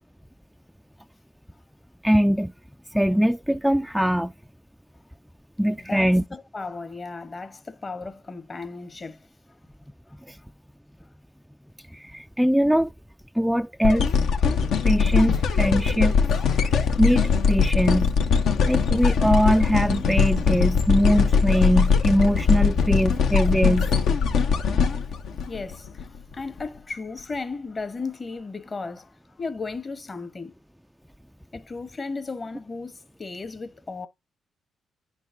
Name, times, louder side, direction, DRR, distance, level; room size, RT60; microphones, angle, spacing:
voice 1, 2.0-2.5 2.9-4.3 5.6-6.2 10.3-10.4 11.9-12.9 13.4-14.1 14.8-16.2 16.5-18.2 18.7-23.9, equal, ahead, 0.3 m, -22 dB
voice 2, 5.8-9.3 25.4-30.5 31.5-34.1, left 4 dB, 40° left, 1.1 m, -35 dB
sound 1, 13.8-26.0 26.6-26.7, left 5 dB, 70° left, 0.8 m, -21 dB
9.9 x 4.0 x 2.6 m
hypercardioid pair, 45°, 0 cm